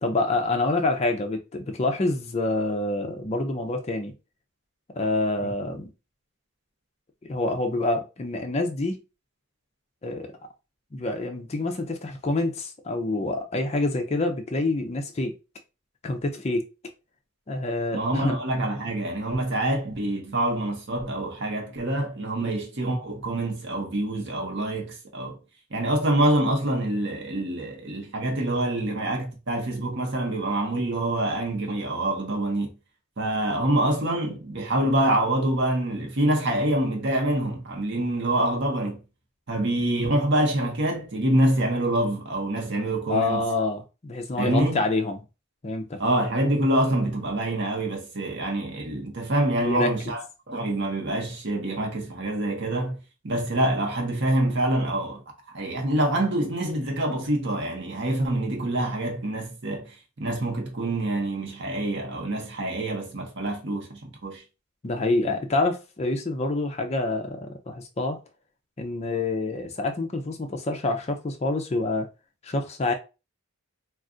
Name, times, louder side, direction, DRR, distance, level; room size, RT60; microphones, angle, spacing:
voice 1, 0.0-4.1 4.9-5.9 7.2-9.0 10.0-10.3 10.9-15.4 16.0-16.7 17.5-18.3 22.4-22.5 43.1-45.2 45.6-46.0 49.6-49.9 64.8-68.2 68.8-72.1 72.4-72.9, left 2 dB, 30° left, 0.4 m, -27 dB
voice 2, 17.9-25.4 25.7-32.7 33.2-39.0 39.5-43.4 44.4-44.8 46.0-50.2 50.5-53.0 53.2-55.2 55.5-64.4, right 1 dB, 50° right, 0.9 m, -26 dB
2.4 x 2.4 x 3.7 m
head